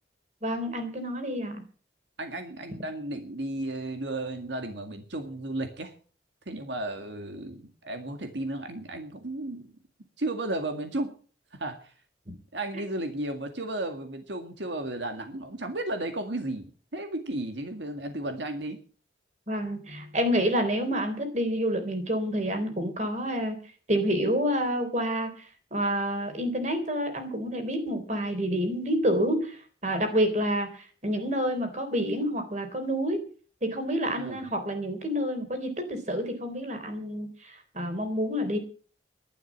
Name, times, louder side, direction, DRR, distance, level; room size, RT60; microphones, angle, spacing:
voice 1, 0.4-1.6 19.5-23.6 23.9-25.3 25.7-33.2 33.6-38.6, equal, 40° right, 8 dB, 3.7 m, -28 dB
voice 2, 2.2-5.9 6.5-9.7 10.2-11.1 11.6-11.9 12.5-16.6 16.9-18.8 34.1-34.4, right 1 dB, 80° right, 6 dB, 2.0 m, -34 dB
12.5 x 11.5 x 7.4 m, 0.41 s
head